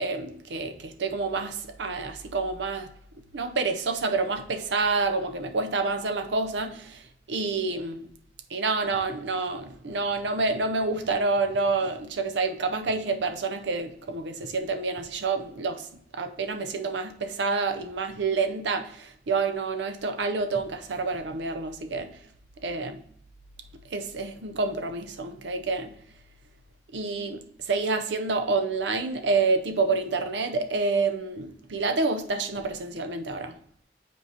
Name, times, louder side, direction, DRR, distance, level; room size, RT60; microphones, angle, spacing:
voice 1, 0.0-2.9 3.3-7.0 7.3-8.1 8.5-15.9 16.1-22.2 22.6-22.9 23.9-25.9 26.9-33.5, right 3 dB, 85° right, 0.6 m, -28 dB
8.0 x 4.6 x 2.8 m
head